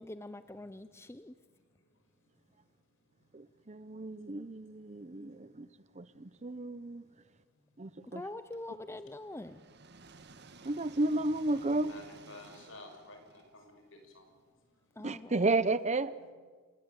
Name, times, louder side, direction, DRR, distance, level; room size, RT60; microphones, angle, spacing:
voice 1, 0.0-1.3 8.1-9.6 15.0-15.5, left 1 dB, 15° left, 0.7 m, -44 dB
voice 2, 3.3-5.7 6.0-7.0 7.8-8.2 10.6-11.9 15.0-16.1, right 2 dB, 35° right, 0.8 m, -32 dB
sound 1, 8.5-14.4, right 3 dB, 55° right, 1.7 m, -56 dB
voice 3, 11.5-14.3 16.2-16.3, left 2 dB, 70° left, 5.7 m, -52 dB
28.5 x 18.0 x 9.1 m
head